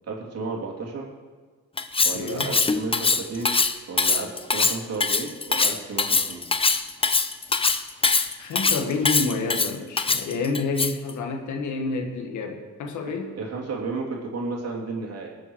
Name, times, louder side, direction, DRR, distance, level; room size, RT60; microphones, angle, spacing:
voice 1, 0.1-1.0 2.0-3.5 3.9-6.4 13.4-15.3, right 3 dB, 55° right, -1 dB, 3.0 m, -32 dB
Cutlery silverware, 1.8-11.1, left 4 dB, 20° left, 0.6 m, -22 dB
voice 2, 2.1-2.5 8.4-13.4, left 4 dB, 75° left, 4 dB, 1.7 m, -29 dB
19.0 x 7.2 x 4.7 m, 1.4 s
cardioid pair, 90°, 30 cm